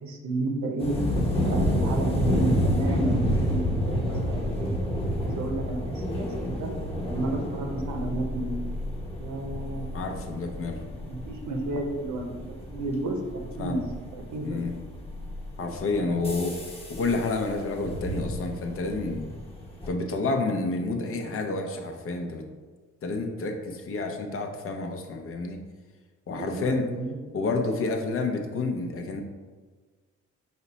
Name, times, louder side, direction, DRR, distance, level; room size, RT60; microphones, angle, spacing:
voice 1, 0.0-1.0 1.4-4.7 5.2-6.7 7.0-8.6 9.2-9.9 11.1-12.3 12.7-13.9 14.1-14.7 16.0-16.3 26.4-27.2, right 2 dB, 70° right, 3 dB, 0.8 m, -32 dB
sound 1, 0.8-19.9, equal, 20° left, 1.1 m, -30 dB
voice 2, 9.9-10.8 13.6-13.8 14.4-14.7 15.6-16.6 16.9-19.3 19.9-22.5 23.0-25.6 26.3-26.9 27.3-29.2, left 3 dB, 45° left, 3 dB, 0.6 m, -29 dB
5.0 x 2.1 x 4.0 m, 1.4 s
cardioid pair, 90°, 30 cm